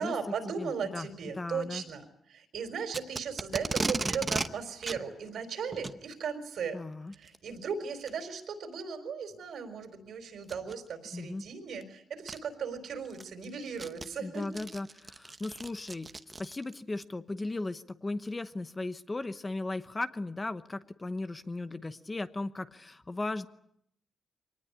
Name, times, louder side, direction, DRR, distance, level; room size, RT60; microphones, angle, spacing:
voice 1, 0.0-6.8 7.1-14.6, right 6 dB, 70° right, 8 dB, 4.3 m, -37 dB
voice 2, 0.6-1.1 1.4-1.8 6.7-7.1 11.1-11.4 14.2-16.1 16.4-23.5, left 2 dB, 20° left, 11 dB, 0.9 m, -36 dB
Packing tape duct tape, 2.9-4.5 4.8-5.0 5.7-6.0 7.1-7.4 8.1-8.2 8.8-8.9 10.4-10.7 11.8-11.9 12.3-12.4 12.9-16.8, right 3 dB, 20° right, 0.9 m, -35 dB
24.5 x 19.0 x 9.8 m, 0.75 s
wide cardioid pair, 165°, 0 cm